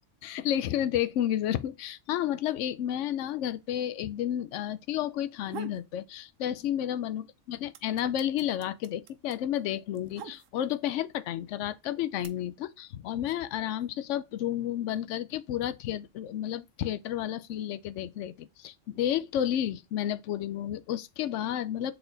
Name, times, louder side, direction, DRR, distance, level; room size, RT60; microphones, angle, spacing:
voice 1, 0.2-21.9, left 11 dB, 75° left, 0.9 m, -31 dB
sound 1, 5.2-5.9 6.3-7.0 7.3-10.9 11.6-12.3, right 7 dB, 85° right, 1.1 m, -45 dB
6.7 x 4.2 x 3.9 m
omnidirectional pair, 1.3 m